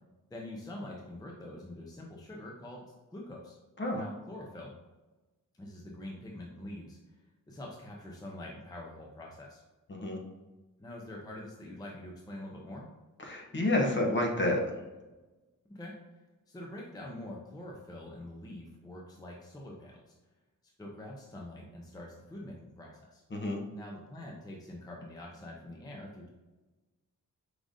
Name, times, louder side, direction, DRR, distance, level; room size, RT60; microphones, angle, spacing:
voice 1, 0.3-2.8 3.1-3.6 3.9-4.8 5.6-9.6 10.8-12.8 15.7-15.9 16.5-20.1 20.8-23.2 23.7-26.3, left 1 dB, 10° left, -2 dB, 0.5 m, -45 dB
voice 2, 9.9-10.2 13.2-14.6 23.3-23.6, left 1 dB, 35° left, 0 dB, 0.8 m, -29 dB
4.9 x 3.7 x 2.6 m, 1.2 s
wide cardioid pair, 175°, 32 cm